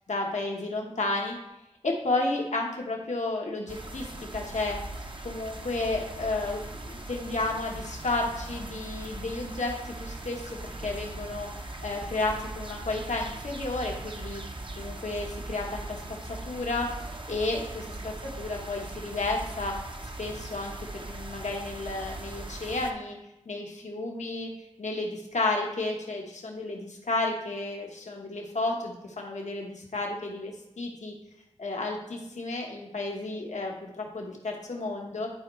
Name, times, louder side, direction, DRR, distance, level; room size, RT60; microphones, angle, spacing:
voice 1, 0.1-1.4 1.8-4.8 5.2-11.5 11.8-14.4 14.8-16.0 16.3-16.9 17.3-19.8 20.2-23.2 23.5-24.5 24.8-31.1 31.6-35.3, left 2 dB, 85° left, 0 dB, 1.2 m, -32 dB
sound 1, 3.7-22.9, right 2 dB, 45° right, 0.8 m, -40 dB
11.0 x 4.5 x 3.1 m, 0.90 s
cardioid pair, 40°, 12 cm